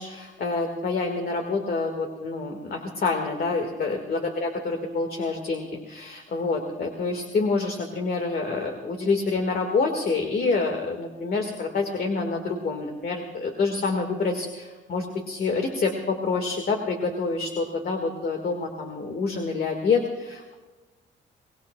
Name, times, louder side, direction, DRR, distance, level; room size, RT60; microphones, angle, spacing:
voice 1, 0.0-20.5, left 4 dB, 50° left, 3 dB, 1.7 m, -27 dB
24.0 x 18.5 x 2.2 m, 1.2 s
cardioid pair, 90°, 20 cm